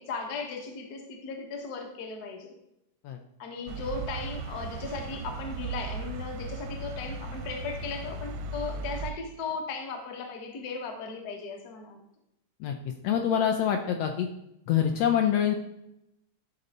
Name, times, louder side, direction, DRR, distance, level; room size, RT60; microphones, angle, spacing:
voice 1, 0.0-2.5 3.4-12.0, left 4 dB, 55° left, 3 dB, 1.1 m, -37 dB
sound 1, 3.7-9.1, right 4 dB, 80° right, 1.5 m, -37 dB
voice 2, 12.6-14.3 14.7-15.5, left 9 dB, 75° left, 4 dB, 1.6 m, -26 dB
12.0 x 4.1 x 4.1 m, 0.85 s
omnidirectional pair, 3.3 m